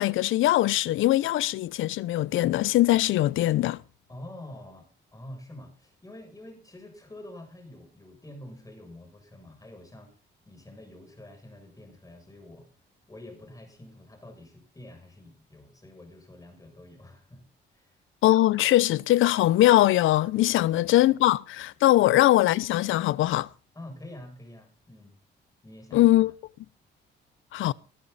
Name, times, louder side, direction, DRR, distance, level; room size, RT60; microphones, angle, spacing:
voice 1, 0.0-3.8 18.2-23.5 25.9-26.3 27.5-27.7, left 15 dB, 85° left, 0.7 m, -21 dB
voice 2, 4.1-10.2 10.5-12.7 13.1-17.4 17.7-18.0 23.7-25.1 25.6-26.1, left 1 dB, 15° left, 7.4 m, -47 dB
19.5 x 12.0 x 4.2 m
cardioid pair, 90°, 20 cm